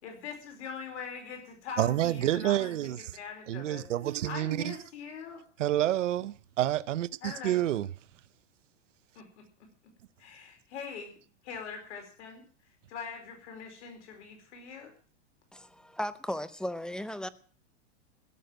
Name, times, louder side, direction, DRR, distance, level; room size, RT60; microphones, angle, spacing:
voice 1, 0.0-3.8 4.2-5.4 7.2-7.6 9.1-9.4 10.2-11.1 11.4-12.4 12.9-14.9, left 6 dB, 70° left, 4.7 m, -42 dB
voice 2, 1.8-3.1 3.5-4.8 5.6-7.9, right 13 dB, 90° right, 0.8 m, -29 dB
voice 3, 15.5-17.3, left 1 dB, ahead, 0.6 m, -36 dB
16.5 x 6.7 x 9.1 m
hypercardioid pair, 130°, 36 cm